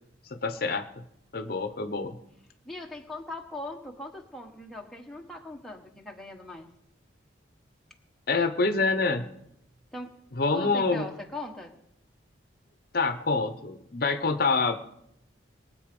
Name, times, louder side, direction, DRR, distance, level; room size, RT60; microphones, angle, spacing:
voice 1, 0.3-0.8 1.3-2.1 8.3-9.3 10.4-11.1 12.9-14.8, left 3 dB, 50° left, 9 dB, 0.8 m, -26 dB
voice 2, 2.6-6.7 9.9-10.2 10.5-11.8, left 1 dB, ahead, 0 dB, 1.2 m, -40 dB
22.0 x 7.9 x 5.3 m, 0.78 s
head